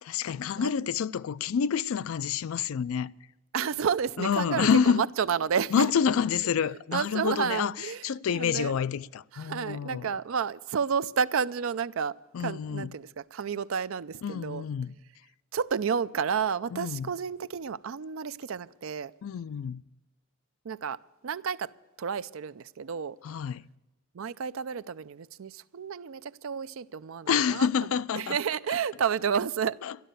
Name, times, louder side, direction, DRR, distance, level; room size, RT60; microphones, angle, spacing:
voice 1, 0.0-3.1 4.2-5.0 5.7-10.1 12.3-12.9 14.2-14.9 16.7-17.1 19.2-19.8 23.2-23.6 27.3-28.4 28.7-28.8 29.8-30.0, left 7 dB, 85° left, 0.4 m, -28 dB
voice 2, 3.5-5.9 6.9-8.0 8.3-8.7 9.3-12.1 12.4-14.6 15.5-19.1 20.6-21.0 21.2-21.7 22.0-23.2 24.1-27.7 28.2-29.8, right 6 dB, 80° right, 0.4 m, -30 dB
12.5 x 12.0 x 6.6 m
head